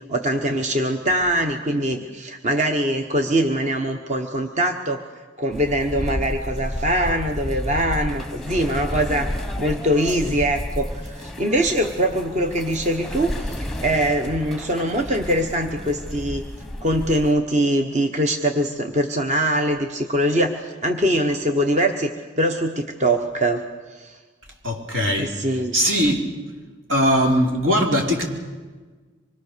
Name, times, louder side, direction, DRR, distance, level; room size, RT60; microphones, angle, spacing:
voice 1, 0.1-5.0 5.4-9.3 9.6-16.4 16.8-24.2 25.2-25.7, right 1 dB, 35° right, 5 dB, 1.1 m, -23 dB
sound 1, 5.5-17.3, left 1 dB, ahead, 1.1 m, -31 dB
voice 2, 24.6-25.3 25.7-26.3 26.9-28.3, equal, 75° right, 0 dB, 4.0 m, -20 dB
25.5 x 22.0 x 6.7 m, 1.4 s
head